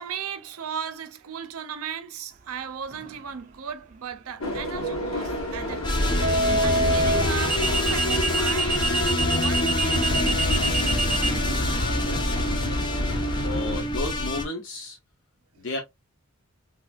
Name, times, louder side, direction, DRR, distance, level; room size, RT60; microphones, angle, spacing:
voice 1, 0.0-6.1 6.6-8.8 9.4-12.1, right 7 dB, 80° right, 0.6 m, -37 dB
sound 1, 2.9-3.2 6.2-11.3, right 2 dB, 35° right, 0.5 m, -25 dB
sound 2, 4.4-13.8, left 1 dB, 75° left, 1.3 m, -30 dB
sound 3, 5.8-14.5, left 1 dB, 20° left, 0.4 m, -26 dB
voice 2, 13.4-15.0 15.6-15.8, left 2 dB, 55° left, 0.7 m, -32 dB
3.4 x 2.5 x 2.3 m
head